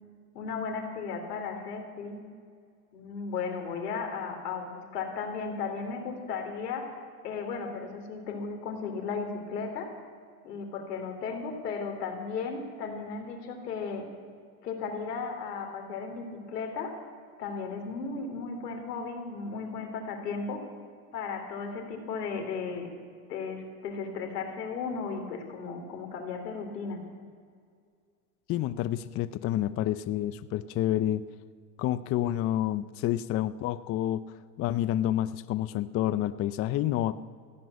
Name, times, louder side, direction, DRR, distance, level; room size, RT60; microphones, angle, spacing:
voice 1, 0.3-2.2 2.9-6.9 7.2-9.9 10.4-14.1 14.6-17.0 17.4-20.6 21.1-22.9 23.3-27.0, left 5 dB, 85° left, 4 dB, 3.1 m, -35 dB
voice 2, 28.5-31.3 31.8-37.2, left 12 dB, 30° left, 14 dB, 0.4 m, -29 dB
15.5 x 7.6 x 9.4 m, 2.1 s
supercardioid pair, 105°, 46 cm